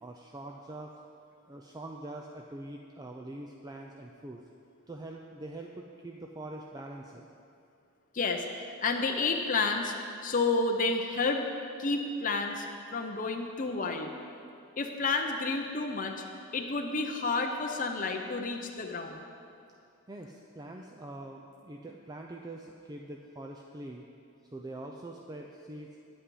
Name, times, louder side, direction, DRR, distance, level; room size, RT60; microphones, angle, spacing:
voice 1, 0.0-0.9 1.5-4.4 4.9-7.3 20.1-24.0 24.5-26.0, right 1 dB, 20° right, 0 dB, 0.4 m, -44 dB
voice 2, 8.1-8.4 8.8-9.9 10.2-11.5 11.8-12.7 12.9-14.1 14.8-16.2 16.5-19.2, left 3 dB, 40° left, 3 dB, 0.6 m, -30 dB
10.0 x 8.5 x 5.4 m, 2.5 s
head